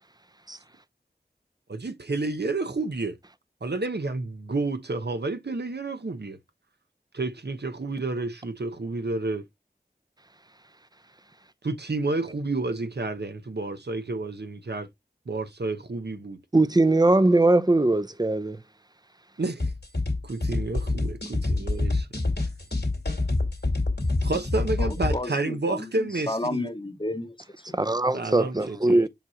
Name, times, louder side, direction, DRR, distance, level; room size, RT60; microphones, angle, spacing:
voice 1, 1.7-3.2 3.6-6.4 7.1-9.4 11.6-14.9 15.3-16.4 19.4-19.7 20.2-22.1 24.2-26.7 28.1-29.1, right 3 dB, 80° right, 0.9 m, -30 dB
voice 2, 16.5-18.6 27.7-29.1, right 2 dB, 25° right, 0.6 m, -21 dB
sound 1, 19.6-25.1, left 2 dB, 85° left, 2.3 m, -27 dB
voice 3, 24.8-27.8, left 1 dB, 30° left, 0.9 m, -33 dB
7.2 x 2.8 x 4.8 m
wide cardioid pair, 45°, 17 cm